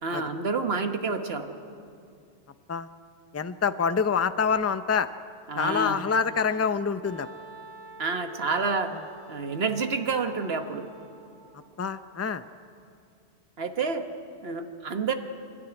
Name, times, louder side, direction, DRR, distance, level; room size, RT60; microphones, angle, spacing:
voice 1, 0.0-1.5 5.5-6.0 8.0-8.9 9.3-10.9 13.6-14.1 14.4-15.1, right 4 dB, 70° right, 6 dB, 1.5 m, -28 dB
voice 2, 3.3-5.1 5.6-7.3 8.9-9.0 11.8-12.4, left 6 dB, 20° left, 11 dB, 0.4 m, -26 dB
Wind instrument woodwind instrument, 7.0-11.7, right 4 dB, 25° right, 1.3 m, -48 dB
27.0 x 12.0 x 9.9 m, 2.5 s
omnidirectional pair, 1.1 m